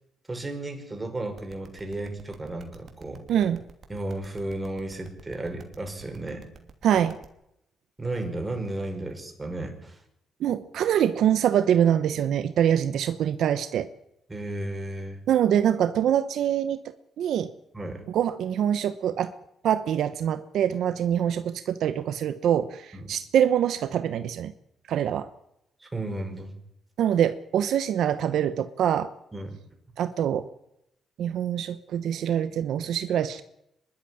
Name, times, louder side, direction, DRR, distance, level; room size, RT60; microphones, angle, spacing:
voice 1, 0.3-3.3 3.9-6.5 8.0-10.0 14.3-15.2 17.7-18.0 22.9-23.1 25.8-26.5 29.3-29.6, right 2 dB, 20° right, 4 dB, 5.4 m, -34 dB
sound 1, 1.4-7.2, right 5 dB, 50° right, 2.8 m, -49 dB
voice 2, 3.3-3.6 6.8-7.2 10.4-13.9 15.3-17.5 18.1-19.3 19.6-24.5 24.9-25.3 27.0-29.1 30.0-30.5 31.2-33.4, right 9 dB, 75° right, 11 dB, 1.0 m, -24 dB
25.0 x 12.0 x 10.0 m, 0.83 s
cardioid pair, 90°, 0 cm